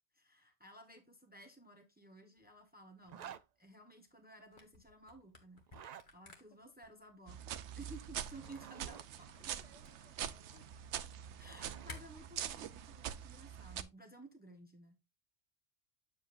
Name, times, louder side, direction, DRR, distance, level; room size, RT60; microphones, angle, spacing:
voice 1, 0.1-9.5 11.0-11.1 11.4-15.0, right 2 dB, 10° right, 1.1 m, -56 dB
Zipper (clothing), 3.0-3.4 5.6-6.1 8.2-9.1 10.9-12.0, right 9 dB, 55° right, 0.5 m, -51 dB
Camera, 4.4-12.0, left 3 dB, 45° left, 1.6 m, -57 dB
sound 1, 7.3-13.8, right 10 dB, 90° right, 0.9 m, -44 dB
voice 2, 9.4-11.1, left 3 dB, 65° left, 1.8 m, -66 dB
8.2 x 7.4 x 2.5 m
omnidirectional pair, 1.2 m